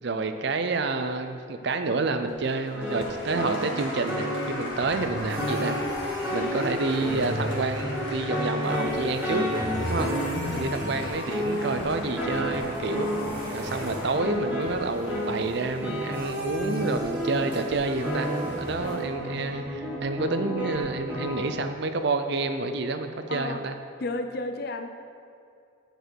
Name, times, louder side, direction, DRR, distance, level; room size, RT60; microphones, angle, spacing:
voice 1, 0.0-5.8 6.3-9.4 9.8-10.1 10.5-13.1 13.5-23.8, right 3 dB, 55° right, 8 dB, 0.5 m, -29 dB
Applause, 2.3-19.4, left 1 dB, 70° left, 1.7 m, -41 dB
sound 1, 2.7-21.5, equal, 10° right, 1.6 m, -32 dB
sound 2, 5.0-19.0, equal, 25° right, 1.7 m, -38 dB
voice 2, 23.3-23.6 24.0-24.9, left 2 dB, 50° left, 6 dB, 0.5 m, -32 dB
7.9 x 6.6 x 4.5 m, 2.5 s
head